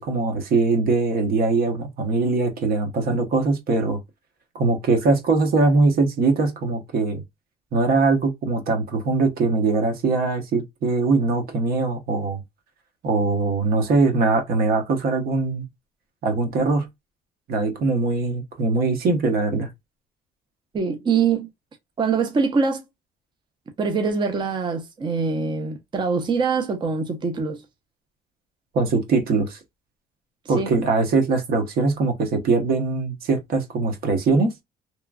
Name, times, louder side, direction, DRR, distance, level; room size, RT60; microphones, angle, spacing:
voice 1, 0.0-4.0 4.5-7.2 7.7-12.4 13.0-15.6 16.2-16.9 17.5-19.7 28.7-29.6 30.5-34.5, right 3 dB, 60° right, 1.0 m, -21 dB
voice 2, 20.7-21.5 22.0-22.8 23.8-27.6 30.6-30.8, right 5 dB, 30° right, 0.6 m, -23 dB
3.0 x 2.3 x 2.3 m
cardioid pair, 110°, 17 cm